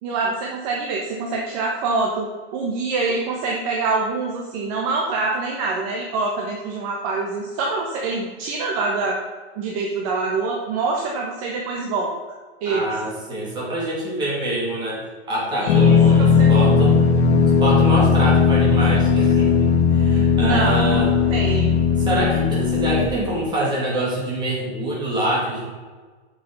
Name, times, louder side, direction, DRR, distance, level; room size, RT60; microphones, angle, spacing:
voice 1, 0.0-9.2 9.6-12.1 12.6-12.9 15.6-16.5 20.4-21.0 21.3-21.8, right 3 dB, 35° right, -1 dB, 1.3 m, -25 dB
voice 2, 12.6-17.0 17.6-21.1 22.0-25.7, right 1 dB, 15° right, -5 dB, 2.7 m, -25 dB
sound 1, 15.7-23.1, left 5 dB, 70° left, 1.7 m, -17 dB
8.9 x 6.3 x 5.5 m, 1.4 s
supercardioid pair, 165°, 32 cm